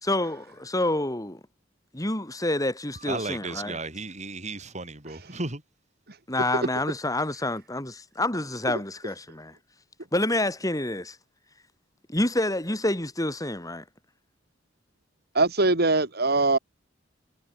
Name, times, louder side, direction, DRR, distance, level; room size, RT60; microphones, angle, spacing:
voice 1, 0.0-1.4 1.9-3.8 6.3-9.6 10.1-11.2 12.1-13.8, left 1 dB, 20° left, 4.5 m, -28 dB
voice 2, 2.9-5.6 6.6-6.8, right 3 dB, 35° right, 5.0 m, -35 dB
voice 3, 15.3-16.6, right 3 dB, 55° right, 3.6 m, -21 dB
head